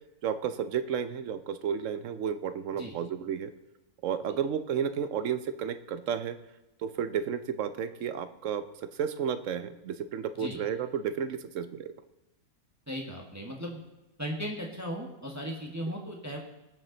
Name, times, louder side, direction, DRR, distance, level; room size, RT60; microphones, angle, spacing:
voice 1, 0.2-3.5 4.0-6.4 6.8-8.6 9.0-11.9, right 8 dB, 65° right, 11 dB, 1.1 m, -32 dB
voice 2, 12.9-13.8 14.2-16.4, equal, 10° right, 0 dB, 1.4 m, -37 dB
19.5 x 7.5 x 3.9 m, 1.0 s
omnidirectional pair, 1.5 m